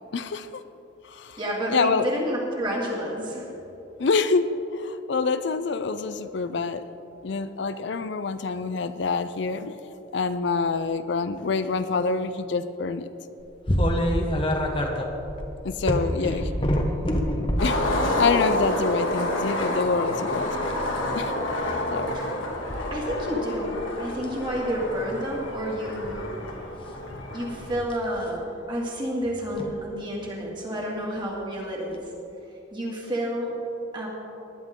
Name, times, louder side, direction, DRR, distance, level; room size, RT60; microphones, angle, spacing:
voice 1, 0.1-0.6 1.1-1.4 1.7-2.1 4.0-4.4 4.7-6.8 7.2-9.8 10.1-13.1 15.6-16.5 17.6-20.5 21.1-21.3 21.9-22.1, left 4 dB, 60° left, 11 dB, 0.5 m, -26 dB
voice 2, 1.4-3.5 16.2-16.4 22.1-22.3 22.9-26.3 27.3-32.0 32.7-33.6 33.9-34.1, equal, 25° right, -3 dB, 2.3 m, -30 dB
sound 1, 13.7-17.8 18.5-18.8 20.6-21.0 22.7-22.8 23.3-23.7 24.1-24.4 25.8-26.2 27.8-28.0 29.5-29.7 31.2-31.3 31.9-32.0, equal, 25° left, 1.1 m, -25 dB
Skateboard, 17.6-27.7, left 1 dB, 85° left, 2.1 m, -29 dB
19.0 x 10.5 x 3.7 m, 3.0 s
head